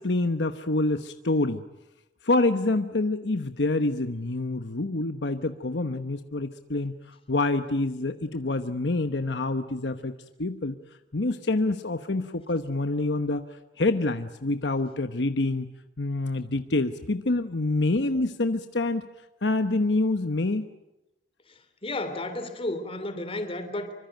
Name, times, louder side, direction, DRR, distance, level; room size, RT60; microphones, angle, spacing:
voice 1, 0.0-1.6 2.2-10.1 10.4-10.8 11.1-15.7 16.0-19.0 19.4-20.7, left 2 dB, 75° left, 9 dB, 1.1 m, -26 dB
voice 2, 21.8-23.9, left 2 dB, 35° left, 9 dB, 3.3 m, -32 dB
25.0 x 24.5 x 9.2 m, 0.94 s
head